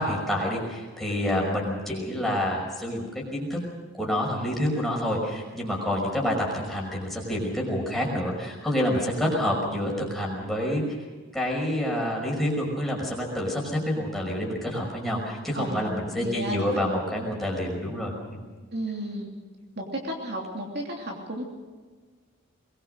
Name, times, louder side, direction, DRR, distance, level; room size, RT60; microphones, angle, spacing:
voice 1, 0.0-3.6 3.9-10.8 11.3-18.4, left 1 dB, ahead, -2 dB, 5.6 m, -28 dB
voice 2, 15.5-15.9 16.2-16.9 18.7-19.3 19.8-21.4, right 1 dB, 50° right, 0 dB, 3.0 m, -33 dB
22.5 x 21.0 x 6.5 m, 1.4 s
head